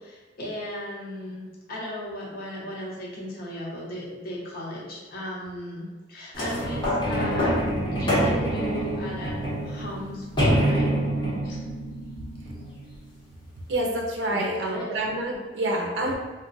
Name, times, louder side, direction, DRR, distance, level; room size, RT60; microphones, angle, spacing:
voice 1, 0.0-10.9 11.4-11.6 14.3-14.9, left 1 dB, 55° left, -4 dB, 0.8 m, -36 dB
sound 1, 6.3-13.1 13.7-13.8, equal, 25° left, 1.0 m, -26 dB
voice 2, 13.7-16.1, right 1 dB, 85° right, 0 dB, 0.5 m, -27 dB
2.4 x 2.2 x 3.9 m, 1.3 s
head